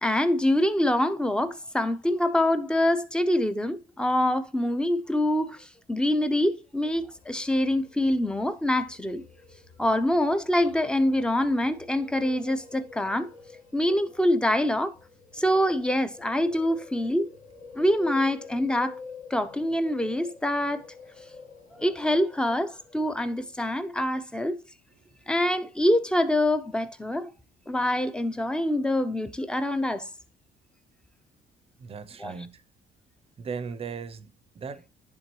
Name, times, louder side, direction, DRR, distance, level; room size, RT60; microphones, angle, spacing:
voice 1, 0.0-9.2 9.8-13.3 13.7-14.9 15.3-17.3 17.7-19.0 19.3-20.8 21.8-24.6 25.3-27.3 27.7-30.1 32.2-32.3, left 1 dB, 5° left, 0.7 m, -25 dB
sound 1, 6.7-23.7, left 5 dB, 50° left, 1.5 m, -48 dB
voice 2, 31.8-32.6 33.4-34.9, right 5 dB, 35° right, 0.6 m, -38 dB
10.5 x 3.7 x 3.0 m
cardioid pair, 110°, 17 cm